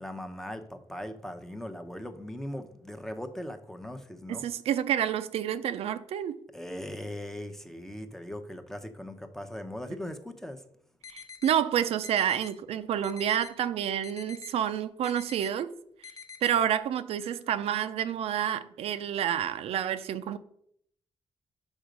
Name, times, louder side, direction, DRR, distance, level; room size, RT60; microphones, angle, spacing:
voice 1, 0.0-4.4 6.5-10.6, left 1 dB, 5° left, 0.6 m, -39 dB
voice 2, 4.4-6.4 11.1-15.7 16.4-20.4, right 10 dB, 85° right, 0.5 m, -29 dB
sound 1, 11.0-11.5 12.0-12.5 13.0-13.5 14.0-14.5 15.0-15.5 16.0-16.5, left 6 dB, 35° left, 0.7 m, -45 dB
6.2 x 5.6 x 5.1 m
wide cardioid pair, 140°, 10 cm